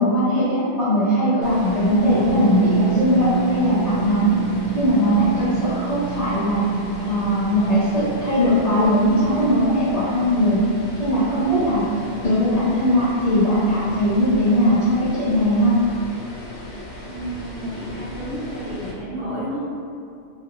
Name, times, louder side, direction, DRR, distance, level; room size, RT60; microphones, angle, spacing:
voice 1, 0.0-4.3 4.7-6.6 7.0-10.7 11.0-11.8 12.2-15.8, equal, 35° left, -12 dB, 0.9 m, -19 dB
sound 1, 1.4-18.9, left 1 dB, 80° left, 0.8 m, -36 dB
Harp, 2.1-11.7 12.0-12.1 12.2-12.6, right 8 dB, 90° right, 0.9 m, -30 dB
voice 2, 17.1-19.6, right 1 dB, 60° right, -12 dB, 1.4 m, -31 dB
3.3 x 2.6 x 2.4 m, 2.4 s
omnidirectional pair, 1.1 m